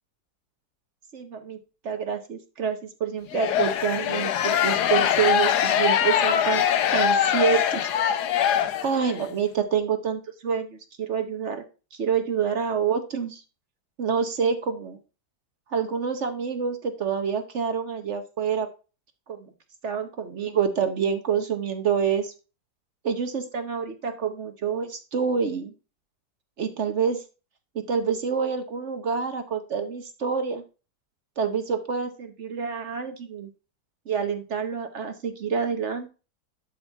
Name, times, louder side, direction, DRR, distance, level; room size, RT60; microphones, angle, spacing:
voice 1, 1.1-1.6 1.8-6.7 6.9-8.1 8.8-11.6 11.9-13.4 14.0-15.0 15.7-18.7 19.3-19.5 19.8-22.3 23.0-25.7 26.6-27.2 27.7-30.6 31.4-33.5 34.1-36.1, right 6 dB, 50° right, 8 dB, 1.1 m, -27 dB
sound 1, 3.3-9.2, left 9 dB, 85° left, 1.3 m, -23 dB
12.0 x 4.3 x 3.3 m, 0.32 s
omnidirectional pair, 1.7 m